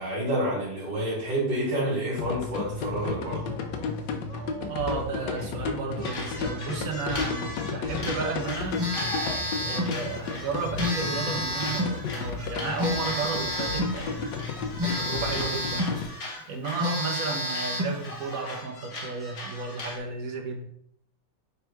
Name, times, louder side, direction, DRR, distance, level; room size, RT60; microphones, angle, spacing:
voice 1, 0.0-3.4, right 1 dB, 80° right, -6 dB, 2.3 m, -28 dB
sound 1, 2.2-16.0, left 5 dB, 85° left, 1.4 m, -33 dB
sound 2, 2.9-5.6 6.0-20.0, left 1 dB, 40° left, 1.2 m, -40 dB
voice 2, 4.7-8.8 9.6-14.3 14.8-16.0 16.5-20.7, right 4 dB, 55° right, 2 dB, 1.5 m, -33 dB
Telephone, 8.8-10.0 10.8-12.0 12.8-14.0 14.8-16.0 16.4-16.5 16.8-18.0, left 1 dB, 30° right, 0.5 m, -29 dB
6.7 x 3.5 x 4.6 m, 0.69 s
omnidirectional pair, 1.9 m